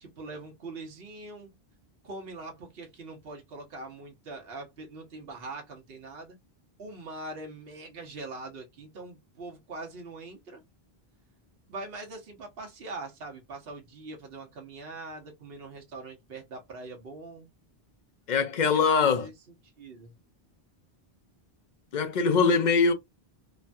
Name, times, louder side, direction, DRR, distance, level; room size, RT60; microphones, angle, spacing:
voice 1, 0.0-1.6 2.0-6.4 6.8-10.6 11.7-17.5 18.7-19.3 19.8-20.1, right 2 dB, 70° right, 1.1 m, -42 dB
voice 2, 18.3-19.3 21.9-22.9, left 5 dB, 55° left, 0.6 m, -22 dB
3.1 x 2.2 x 2.5 m
omnidirectional pair, 1.0 m